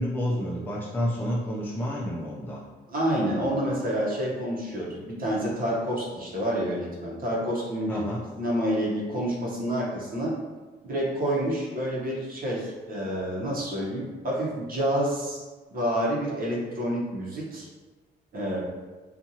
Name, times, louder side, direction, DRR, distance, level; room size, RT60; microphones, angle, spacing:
voice 1, 0.0-2.6 7.9-8.2, equal, 10° left, -5 dB, 0.4 m, -29 dB
voice 2, 2.9-8.0 8.4-10.3 10.8-15.4 15.7-17.7 18.3-18.6, equal, 45° right, -4 dB, 0.9 m, -28 dB
2.6 x 2.4 x 2.8 m, 1.3 s
cardioid pair, 90°, 20 cm